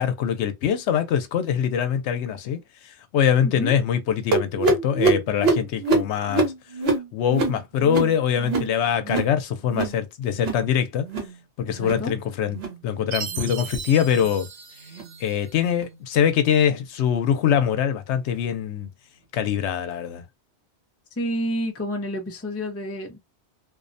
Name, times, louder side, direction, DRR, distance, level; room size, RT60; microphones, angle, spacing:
voice 1, 0.0-6.5 7.1-11.1 11.6-14.5 15.2-18.9 19.3-20.2, left 8 dB, 85° left, 0.9 m, -23 dB
voice 2, 3.4-3.7 11.7-12.1 21.2-23.2, equal, 20° left, 0.4 m, -29 dB
sound 1, 4.3-9.4 9.6-10.0 10.3-10.7 11.0-11.4 11.7-12.1 12.5-12.8 13.3-13.6 14.1-14.3 14.9-15.1 15.7-15.9 16.6-16.7 17.5-17.6, right 3 dB, 65° right, 1.1 m, -25 dB
Chime, 13.1-15.6, right 8 dB, 85° right, 0.9 m, -36 dB
2.5 x 2.1 x 2.5 m
omnidirectional pair, 1.1 m